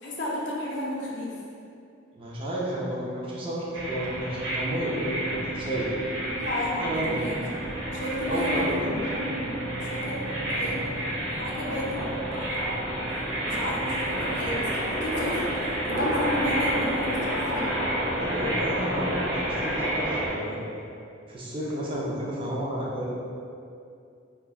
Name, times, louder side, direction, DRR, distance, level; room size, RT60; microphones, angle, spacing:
voice 1, 0.0-1.4 6.2-7.4 7.9-9.6 9.9-10.2 10.5-10.8 11.3-12.4 13.1-13.2 13.4-17.9, left 1 dB, 60° left, -4 dB, 0.5 m, -32 dB
voice 2, 2.2-5.9 6.8-7.2 8.2-9.0 10.0-10.2 18.1-20.6 21.3-23.1, right 1 dB, 25° right, -6 dB, 0.4 m, -31 dB
sound 1, 3.7-20.3, right 1 dB, 75° right, 0.7 m, -30 dB
2.8 x 2.3 x 2.3 m, 2.5 s
head